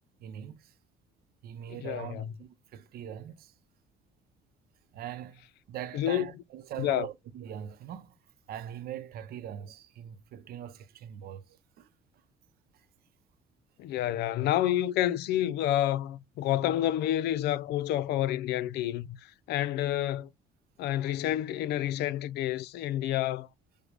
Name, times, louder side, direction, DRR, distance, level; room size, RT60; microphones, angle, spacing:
voice 1, 0.2-0.7 1.4-3.5 4.9-5.4 5.7-8.2 8.5-11.9, right 10 dB, 65° right, 0.6 m, -42 dB
voice 2, 1.8-2.3 5.9-6.3 6.8-7.1 13.8-20.3 20.8-23.5, left 12 dB, 75° left, 0.5 m, -29 dB
5.0 x 2.2 x 4.8 m
cardioid pair, 110°, 17 cm